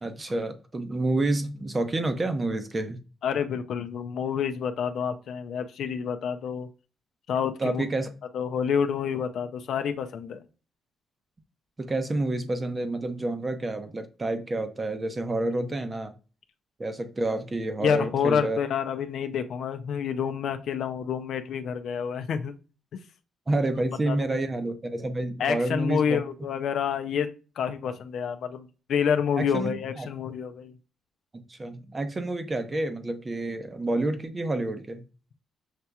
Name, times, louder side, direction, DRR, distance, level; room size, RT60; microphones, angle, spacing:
voice 1, 0.0-3.0 7.6-8.1 11.8-16.1 16.8-18.6 23.5-26.2 29.4-30.1 31.3-35.0, right 2 dB, 25° right, 8 dB, 0.8 m, -29 dB
voice 2, 3.2-6.7 7.3-7.8 8.3-10.4 15.6-15.7 17.8-22.5 24.1-24.4 25.4-27.3 27.6-30.7, left 7 dB, 70° left, 8 dB, 0.5 m, -28 dB
6.6 x 2.9 x 2.3 m, 0.34 s
cardioid pair, 90°, 0 cm